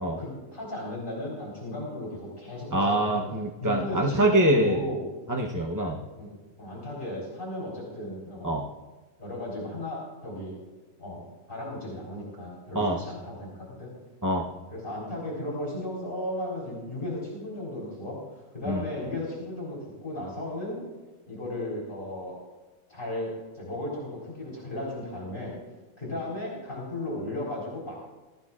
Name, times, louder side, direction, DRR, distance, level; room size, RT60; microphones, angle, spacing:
voice 1, 0.1-3.2 3.6-5.1 6.1-8.6 9.2-10.6 11.0-13.9 14.4-18.2 18.5-20.8 21.3-22.3 22.9-25.6 26.0-27.9, left 1 dB, 40° left, -5 dB, 3.9 m, -35 dB
voice 2, 2.7-4.8 5.3-6.0 8.4-8.6 12.7-13.0 14.2-14.5 18.7-18.8, right 1 dB, 15° right, 0 dB, 0.7 m, -24 dB
22.5 x 13.0 x 2.5 m, 1.2 s
omnidirectional pair, 1.4 m